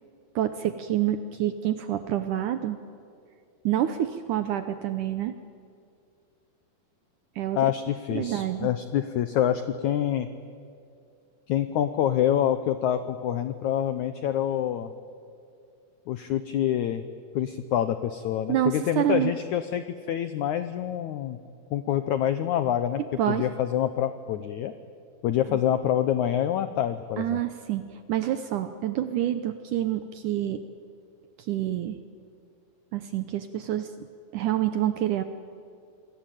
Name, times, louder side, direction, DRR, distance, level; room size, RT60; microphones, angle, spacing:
voice 1, 0.4-2.8 3.7-5.3 7.4-7.6 8.1-8.7 18.5-19.3 23.2-23.5 25.5-25.6 27.2-30.6 31.4-32.0 32.9-33.9 34.3-35.2, right 12 dB, 75° right, 10 dB, 1.9 m, -27 dB
voice 2, 7.6-10.3 11.5-14.9 16.1-17.0 17.4-21.4 21.7-23.0 23.3-24.7 25.2-27.4, left 10 dB, 90° left, 11 dB, 1.7 m, -26 dB
28.0 x 21.5 x 9.1 m, 2.4 s
omnidirectional pair, 4.6 m